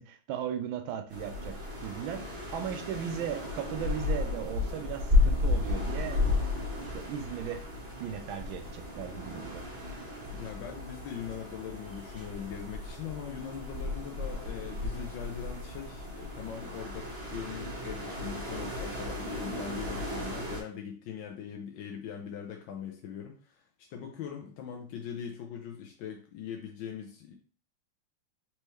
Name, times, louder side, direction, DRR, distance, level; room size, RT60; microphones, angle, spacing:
voice 1, 0.0-1.6 1.8-2.2 2.5-7.6 8.0-9.6, right 9 dB, 80° right, 7 dB, 1.4 m, -37 dB
sound 1, 1.1-20.6, left 2 dB, 35° right, 1.6 m, -33 dB
voice 2, 10.3-27.3, left 8 dB, 70° left, 1 dB, 1.3 m, -41 dB
4.4 x 3.4 x 3.1 m, 0.39 s
omnidirectional pair, 2.2 m